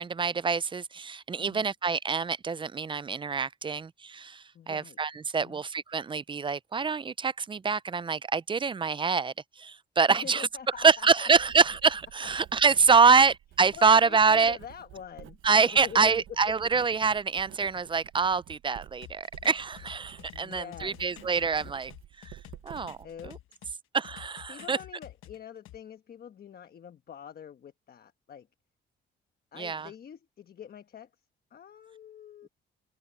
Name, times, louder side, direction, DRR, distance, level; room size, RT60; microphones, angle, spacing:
voice 1, 0.0-10.5 10.8-14.6 15.4-21.9 22.2-23.0 23.3-23.4 23.9-24.8 29.6-29.9, right 5 dB, 25° right, 0.4 m, -25 dB
voice 2, 1.4-1.7 4.5-5.0 5.4-5.6 10.1-11.3 13.7-16.2 20.3-21.0 23.0-23.6 24.5-28.5 29.5-31.1 31.5-32.5, left 8 dB, 50° left, 1.2 m, -45 dB
Writing, 10.5-23.3, right 13 dB, 80° right, 1.0 m, -51 dB
sound 1, 19.0-23.7 24.0-25.8, left 14 dB, 85° left, 1.2 m, -49 dB
cardioid pair, 90°, 20 cm